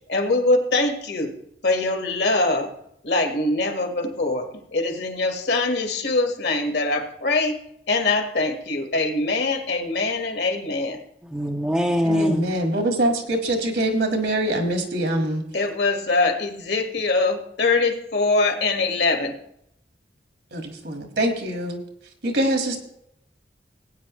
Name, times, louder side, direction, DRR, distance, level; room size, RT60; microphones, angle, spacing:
voice 1, 0.1-1.3 1.6-2.7 3.0-4.5 4.7-7.6 7.9-11.0 15.5-19.3, left 3 dB, 65° left, 4 dB, 1.7 m, -23 dB
voice 2, 11.3-12.4, equal, 5° right, 1 dB, 0.6 m, -22 dB
voice 3, 12.0-15.4 20.5-21.8 22.2-22.8, right 1 dB, 65° right, 4 dB, 1.8 m, -24 dB
17.0 x 9.1 x 3.1 m, 0.74 s
head